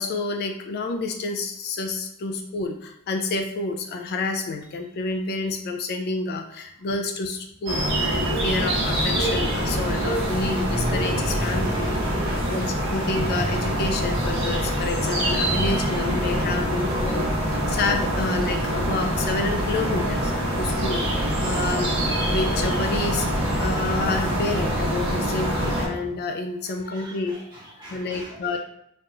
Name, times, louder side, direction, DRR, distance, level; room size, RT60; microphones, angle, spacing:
voice 1, 0.0-11.9 12.5-17.2 17.5-21.9 22.3-27.4 27.9-28.6, left 3 dB, 50° left, 4 dB, 0.3 m, -29 dB
sound 1, 7.7-25.9, equal, 60° right, 1.2 m, -24 dB
voice 2, 11.4-12.9 15.7-15.8 16.4-16.5 16.8-17.3 23.6-23.7 26.8-28.6, right 1 dB, 20° right, -7 dB, 1.4 m, -44 dB
4.1 x 2.9 x 2.4 m, 0.78 s
head